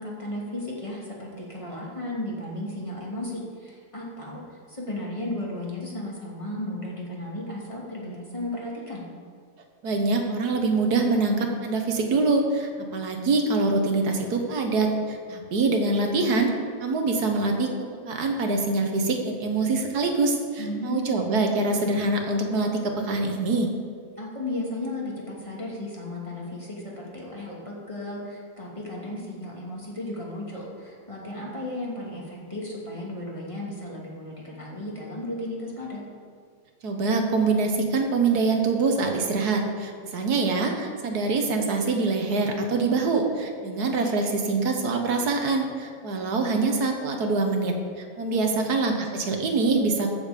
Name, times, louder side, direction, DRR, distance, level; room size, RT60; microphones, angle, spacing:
voice 1, 0.0-9.0 20.6-21.3 24.2-36.0 48.3-48.8, left 1 dB, 20° left, -4 dB, 2.4 m, -35 dB
voice 2, 9.8-16.5 16.8-17.7 18.1-23.7 36.8-50.1, right 3 dB, 80° right, 3 dB, 1.7 m, -24 dB
14.0 x 7.2 x 5.2 m, 2.1 s
omnidirectional pair, 1.7 m